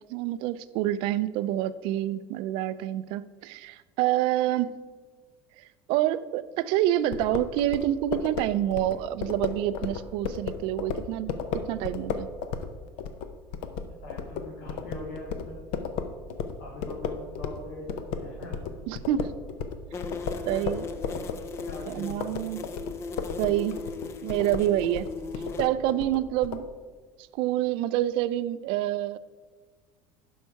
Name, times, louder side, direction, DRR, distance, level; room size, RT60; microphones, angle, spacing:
voice 1, 0.0-4.7 5.6-11.3 11.7-12.3 18.9-19.3 20.5-20.8 21.9-22.6 23.4-23.8 24.2-25.1 25.6-26.6 27.3-29.2, right 13 dB, 55° right, 15 dB, 0.4 m, -27 dB
sound 1, 7.1-17.6 17.9-26.6, left 6 dB, 55° left, 0.7 m, -34 dB
voice 2, 13.8-15.6 16.6-18.7 20.2-21.2 21.6-22.3, left 1 dB, 90° left, -4 dB, 2.4 m, -42 dB
sound 2, 19.9-25.7, left 4 dB, 25° left, 0.5 m, -38 dB
11.5 x 5.5 x 4.6 m, 1.5 s
cardioid pair, 165°, 11 cm